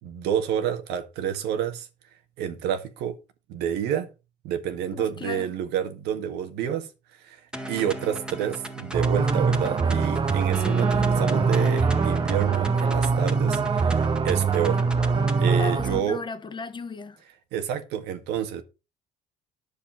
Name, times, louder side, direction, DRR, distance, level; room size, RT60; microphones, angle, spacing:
voice 1, 0.0-1.9 2.4-3.1 3.5-4.1 4.4-6.9 7.2-7.4 7.7-14.8 15.4-16.2 17.5-18.6, right 9 dB, 90° right, 1.9 m, -29 dB
voice 2, 4.9-5.5 15.6-17.2, left 4 dB, 25° left, 1.3 m, -36 dB
sound 1, 7.5-15.5, right 1 dB, 5° right, 1.8 m, -37 dB
sound 2, 8.9-16.0, right 5 dB, 30° right, 0.9 m, -23 dB
10.5 x 7.0 x 5.7 m
cardioid pair, 110°, 17 cm